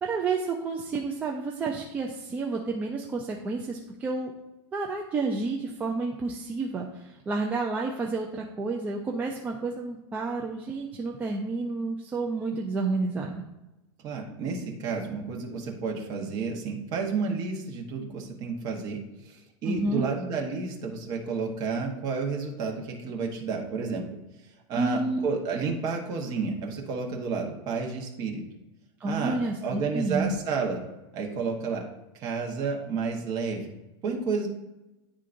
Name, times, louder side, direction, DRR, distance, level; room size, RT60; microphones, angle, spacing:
voice 1, 0.0-4.3 4.7-13.3 19.7-20.1 24.7-25.3 29.0-30.4, right 3 dB, 10° right, 0 dB, 0.3 m, -30 dB
voice 2, 14.0-24.0 24.7-28.4 29.0-30.8 31.1-31.8 32.2-33.7 34.0-34.5, right 4 dB, 25° right, 0 dB, 1.0 m, -31 dB
10.5 x 3.7 x 2.5 m, 0.99 s
supercardioid pair, 170°, 14 cm